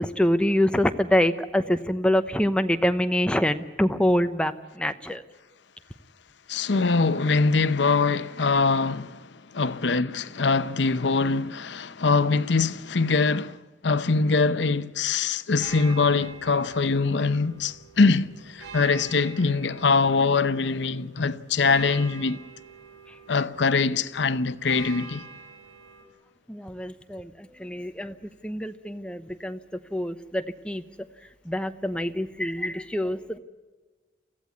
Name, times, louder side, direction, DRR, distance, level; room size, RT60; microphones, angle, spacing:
voice 1, 0.0-5.2 26.5-29.6 29.9-30.8 31.4-33.4, equal, 5° left, 0.8 m, -25 dB
voice 2, 6.5-13.6 13.8-22.4 23.3-25.2, left 4 dB, 75° left, 0.8 m, -23 dB
sound 1, 15.6-26.0, right 4 dB, 80° right, 5.3 m, -45 dB
24.0 x 15.5 x 9.5 m
head